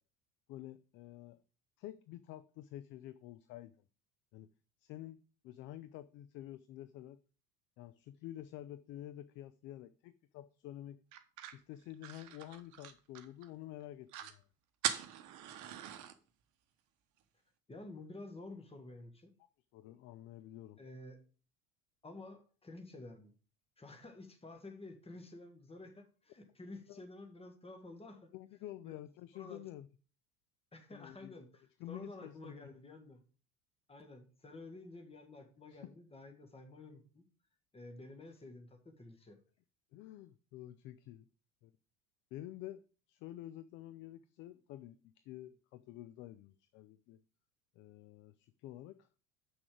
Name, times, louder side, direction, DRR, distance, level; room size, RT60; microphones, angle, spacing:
voice 1, 0.5-1.4 1.8-3.7 4.3-4.5 4.8-7.2 7.8-11.0 11.5-14.4 19.7-20.8 26.9-27.0 28.3-29.9 30.9-31.3 31.8-32.7 35.7-35.8 39.9-41.3 41.6-41.7 42.3-42.8 43.1-47.2 47.8-49.1, left 13 dB, 30° left, 0.4 m, -49 dB
sound 1, 11.1-13.5 13.8-13.9 14.1-14.4 14.8-16.1, right 10 dB, 40° right, 1.0 m, -41 dB
voice 2, 17.7-19.3 20.8-21.2 22.0-23.3 23.8-28.3 28.8-28.9 29.3-29.6 30.7-33.2 33.9-37.2 37.7-39.4, left 2 dB, 15° left, 1.6 m, -51 dB
7.7 x 6.0 x 5.0 m
figure-of-eight pair, 70°, 44 cm